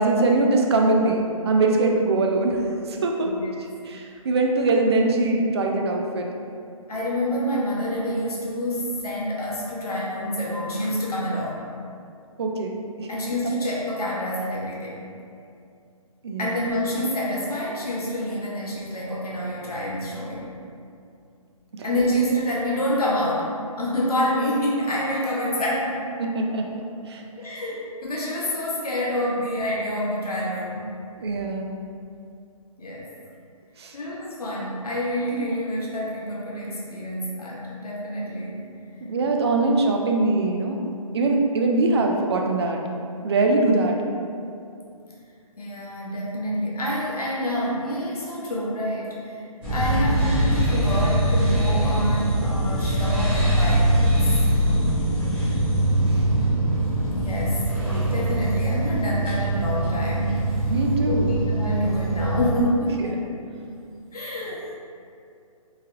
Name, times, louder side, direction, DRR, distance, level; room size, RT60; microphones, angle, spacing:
voice 1, 0.0-3.3 3.9-6.3 12.4-13.1 16.2-16.6 21.8-21.9 26.2-26.8 27.1-27.2 31.2-31.7 33.8-33.9 39.0-40.8 41.1-42.8 43.2-44.0 60.7-61.4, right 2 dB, 45° right, 1 dB, 0.4 m, -22 dB
voice 2, 6.9-11.7 13.1-15.0 16.4-20.5 21.8-26.1 27.4-30.9 32.8-33.1 33.9-38.6 45.6-54.4 56.7-64.7, equal, 80° left, -4 dB, 0.7 m, -27 dB
sound 1, 49.6-62.5, right 1 dB, 5° right, 0.8 m, -22 dB
3.1 x 2.7 x 2.4 m, 2.5 s
hypercardioid pair, 155°, 19 cm